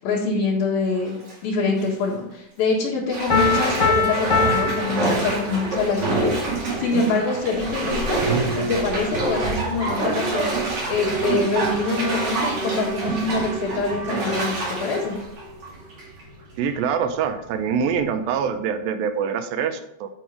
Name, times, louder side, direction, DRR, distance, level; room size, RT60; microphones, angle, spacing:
voice 1, 0.0-1.2 1.4-6.3 6.8-8.2 8.5-10.5 10.9-15.2, left 4 dB, 80° left, -7 dB, 3.5 m, -25 dB
Bathtub (filling or washing), 0.9-1.3 1.8-1.9 3.1-16.2 16.6-16.7, right 2 dB, 40° right, 2.8 m, -27 dB
Piano, 3.3-5.9, left 3 dB, 65° left, 1.0 m, -22 dB
Boat Water vehicle / Alarm, 8.1-18.7, right 5 dB, 65° right, 3.1 m, -33 dB
voice 2, 16.6-20.1, right 7 dB, 85° right, 8 dB, 2.4 m, -24 dB
9.3 x 5.6 x 4.6 m, 0.82 s
omnidirectional pair, 4.2 m